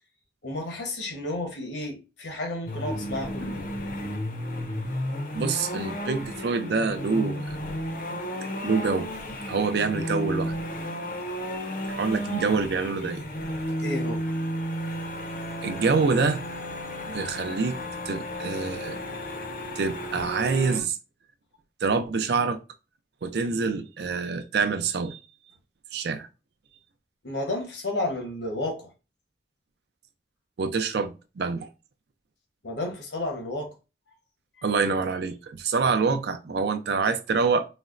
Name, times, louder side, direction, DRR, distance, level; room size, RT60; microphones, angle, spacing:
voice 1, 0.4-3.7 13.8-14.3 27.2-28.9 32.6-33.7, left 2 dB, 75° left, 1.0 m, -32 dB
sound 1, 2.7-20.8, equal, 50° left, 0.6 m, -33 dB
voice 2, 5.3-7.5 8.6-9.1 9.5-10.5 11.9-13.2 15.6-16.4 17.1-17.8 18.1-19.0 19.8-21.0 21.8-22.6 23.2-25.2 25.9-26.3 30.6-31.7 34.6-37.7, right 4 dB, 60° right, 0.4 m, -26 dB
4.1 x 2.0 x 2.4 m
head